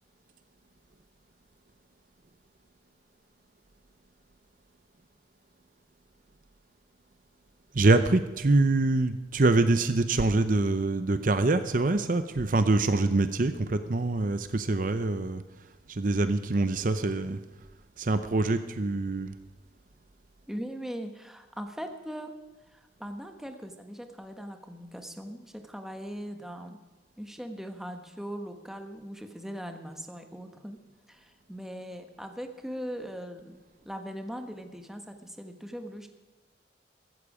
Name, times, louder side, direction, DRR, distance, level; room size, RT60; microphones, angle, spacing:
voice 1, 7.7-17.4 18.0-19.4, right 2 dB, 50° right, 10 dB, 0.7 m, -25 dB
voice 2, 20.5-22.3 22.7-26.8 27.2-30.8 31.1-33.6 33.8-36.1, equal, ahead, 5 dB, 1.3 m, -40 dB
15.0 x 14.0 x 5.0 m, 1.2 s
head